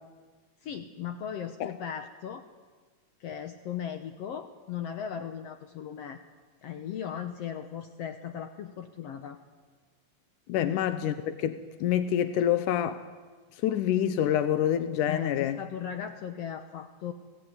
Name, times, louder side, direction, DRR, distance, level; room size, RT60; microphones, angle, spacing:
voice 1, 0.6-2.4 3.2-6.2 6.6-9.4 10.6-10.7 15.1-17.1, left 8 dB, 65° left, 1.9 m, -37 dB
voice 2, 10.5-13.0 13.6-15.6, left 10 dB, 85° left, 2.5 m, -27 dB
28.0 x 18.5 x 9.6 m
omnidirectional pair, 3.5 m